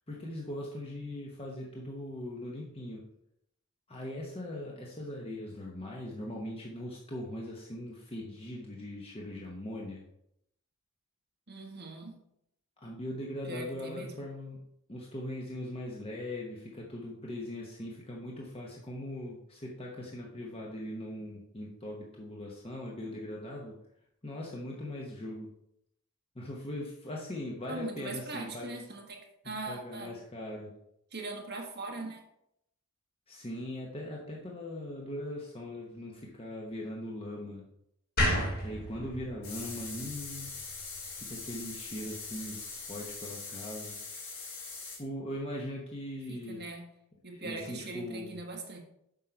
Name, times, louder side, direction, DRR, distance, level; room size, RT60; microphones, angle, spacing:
voice 1, 0.1-3.0 3.9-10.0 12.8-14.6 14.9-23.8 24.2-25.5 26.3-28.8 29.4-30.7 33.3-37.7 38.6-40.6 41.2-44.0 45.0-46.6 47.3-48.4, left 1 dB, 25° left, -2 dB, 1.0 m, -40 dB
voice 2, 11.5-12.2 13.5-14.1 27.7-30.1 31.1-32.2 46.3-46.9 47.2-48.8, right 3 dB, 50° right, 1 dB, 1.5 m, -41 dB
sound 1, 38.2-41.3, equal, 45° left, 2.2 m, -33 dB
sound 2, 39.4-45.0, left 4 dB, 70° left, 2.7 m, -42 dB
7.6 x 5.5 x 4.5 m, 0.77 s
head